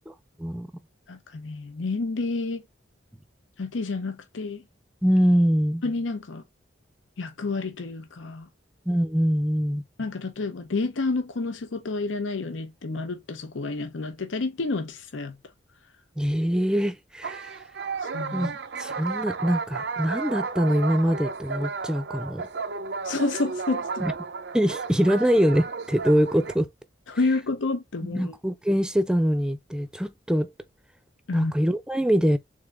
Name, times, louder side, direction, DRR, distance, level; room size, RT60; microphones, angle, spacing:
voice 1, 1.1-2.6 3.6-4.6 5.8-6.4 7.2-8.5 10.0-15.3 18.1-18.5 23.0-23.9 27.1-28.3 31.3-31.5, left 3 dB, 85° left, 0.7 m, -29 dB
voice 2, 5.0-5.8 8.9-9.8 16.2-17.6 18.3-18.5 18.8-22.4 24.0-24.1 24.5-26.7 28.0-30.5 31.3-32.4, equal, 5° right, 0.4 m, -23 dB
sound 1, 17.2-26.5, right 5 dB, 60° right, 0.5 m, -33 dB
3.7 x 3.7 x 3.3 m
head